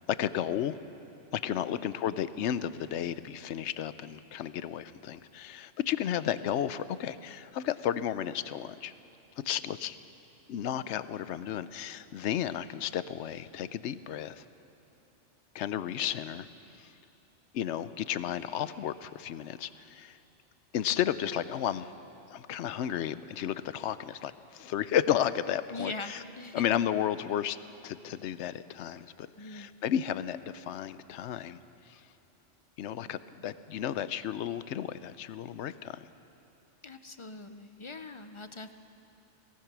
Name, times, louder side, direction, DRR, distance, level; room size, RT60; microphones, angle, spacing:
voice 1, 0.1-0.8 1.3-8.9 9.4-10.0 10.5-14.4 15.5-16.5 16.8-16.9 17.5-20.2 20.7-21.9 22.3-26.2 26.5-27.6 27.8-31.6 31.9-32.0 32.8-36.1, left 10 dB, 75° left, 14 dB, 0.9 m, -33 dB
voice 2, 1.5-1.9 25.7-26.8 29.3-29.7 36.8-38.7, left 3 dB, 35° left, 9 dB, 0.6 m, -42 dB
23.0 x 19.0 x 6.1 m, 2.9 s
omnidirectional pair, 1.2 m